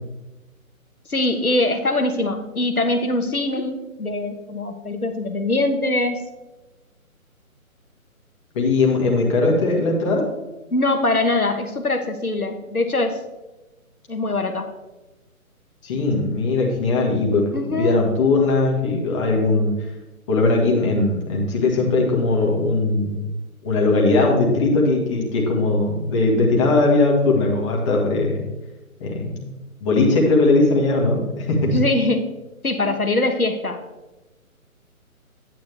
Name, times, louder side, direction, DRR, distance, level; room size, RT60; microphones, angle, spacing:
voice 1, 1.1-6.2 10.7-13.2 14.1-14.7 17.5-18.0 31.6-32.4 32.6-33.8, left 2 dB, 85° left, 5 dB, 1.3 m, -22 dB
voice 2, 8.5-10.3 15.8-19.7 20.3-23.2 23.6-28.4 29.0-29.5 29.8-31.8, left 3 dB, 20° left, -2 dB, 1.6 m, -19 dB
10.5 x 9.2 x 3.4 m, 1.1 s
figure-of-eight pair, 140°, 43 cm